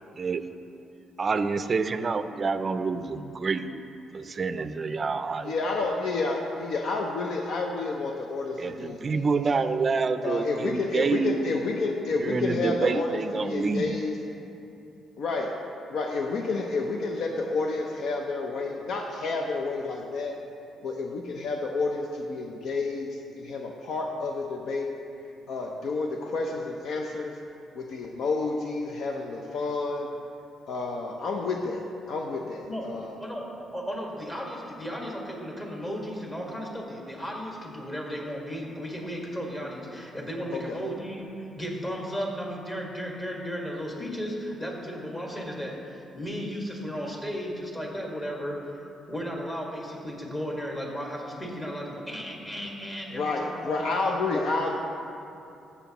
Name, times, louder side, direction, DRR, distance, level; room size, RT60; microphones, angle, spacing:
voice 1, 0.1-0.5 1.2-3.8 4.1-5.5 8.6-11.4 12.2-13.9, right 4 dB, 40° right, 10 dB, 0.4 m, -27 dB
voice 2, 5.4-9.3 10.2-14.1 15.2-15.5 15.9-20.4 20.8-24.9 25.5-27.4 27.7-30.1 30.7-33.2 40.5-40.8 53.1-54.8, left 3 dB, 70° left, 2 dB, 0.6 m, -30 dB
voice 3, 32.6-48.7 49.1-53.9 54.3-54.5, equal, 20° left, -1 dB, 1.8 m, -35 dB
13.5 x 7.0 x 3.0 m, 2.7 s
cardioid pair, 90°, 0 cm